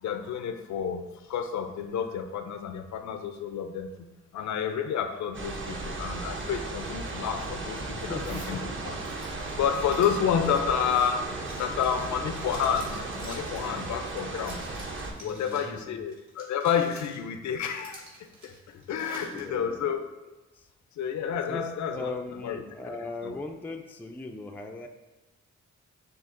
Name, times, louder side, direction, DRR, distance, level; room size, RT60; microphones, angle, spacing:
voice 1, 0.0-4.1 4.3-9.0 9.4-11.2 11.6-14.6 15.2-18.0 18.4-20.0 21.0-22.2 22.4-22.6 23.2-23.3, left 7 dB, 65° left, 7 dB, 0.5 m, -30 dB
sound 1, 5.3-15.1, right 2 dB, 40° right, 0.7 m, -36 dB
voice 2, 7.9-8.7 10.4-10.9 11.2-12.3 15.1-16.0 19.3-19.9 20.5-20.7 21.5-21.7 21.9-24.9, left 2 dB, 5° left, 4 dB, 0.3 m, -39 dB
Zipper (clothing), 8.2-8.6 9.0-15.7 16.1-17.2 17.6-19.4, right 2 dB, 70° right, 1.4 m, -48 dB
6.5 x 2.4 x 2.5 m, 1.1 s
cardioid pair, 60°, 31 cm